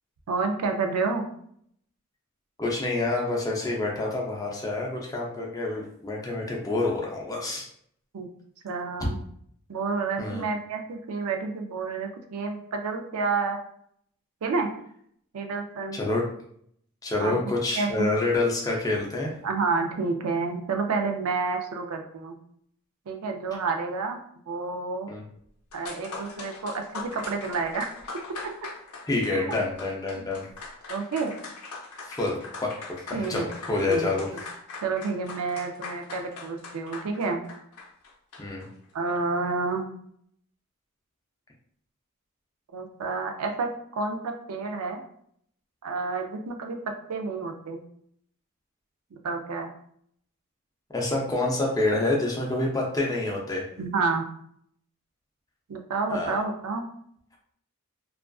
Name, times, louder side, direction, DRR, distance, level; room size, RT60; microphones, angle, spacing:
voice 1, 0.3-1.2 8.1-8.3 8.6-9.2 9.7-13.6 14.4-14.7 15.3-16.0 17.2-17.4 17.8-18.1 19.4-22.4 23.1-24.2 24.5-25.1 25.7-27.9 29.3-29.6 30.9-31.4 33.1-33.5 33.9-34.1 34.3-34.4 34.8-37.4 38.9-39.9 42.7-45.0 45.8-46.8 47.1-47.8 49.1-49.7 53.8-54.3 55.7-56.8, right 4 dB, 85° right, 4 dB, 0.4 m, -29 dB
voice 2, 2.6-7.7 10.2-10.4 15.9-16.2 17.0-19.4 25.1-25.2 29.1-30.4 32.1-32.7 33.1-34.3 38.4-38.7 50.9-53.6 56.1-56.3, left 2 dB, 15° left, -2 dB, 0.4 m, -27 dB
sound 1, 25.4-25.5 25.7-38.7, left 3 dB, 80° left, 0.5 m, -41 dB
2.4 x 2.3 x 2.3 m, 0.67 s
head